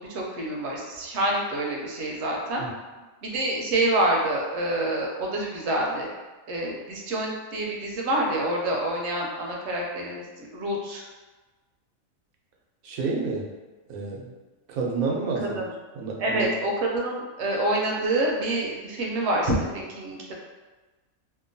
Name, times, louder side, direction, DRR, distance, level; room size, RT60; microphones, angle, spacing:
voice 1, 0.0-2.6 3.2-6.1 6.5-11.0 15.5-15.7 16.2-20.3, right 1 dB, 65° right, -1 dB, 0.8 m, -27 dB
voice 2, 12.8-13.5 13.9-14.3 14.7-15.6 15.9-16.4, right 4 dB, 90° right, -1 dB, 1.0 m, -29 dB
2.8 x 2.2 x 2.6 m, 1.2 s
omnidirectional pair, 1.4 m